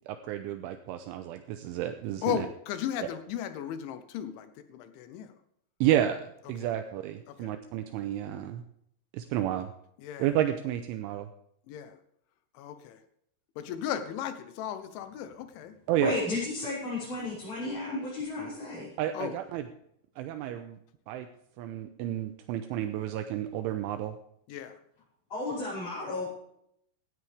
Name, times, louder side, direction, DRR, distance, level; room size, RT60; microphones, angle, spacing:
voice 1, 0.1-2.5 5.8-8.6 9.1-9.7 10.2-11.3 15.9-16.1 19.0-19.6 20.2-20.8 21.1-21.3 21.6-24.2, right 12 dB, 80° right, 8 dB, 3.0 m, -31 dB
voice 2, 2.2-5.3 6.6-6.7 7.3-7.5 10.0-10.3 11.7-12.0 12.5-13.0 13.6-15.8 19.1-19.3 24.5-24.8, left 10 dB, 75° left, 10 dB, 3.0 m, -36 dB
voice 3, 16.0-18.9 25.3-26.3, left 2 dB, 35° left, -11 dB, 7.0 m, -33 dB
17.0 x 13.0 x 3.5 m, 0.74 s
omnidirectional pair, 5.9 m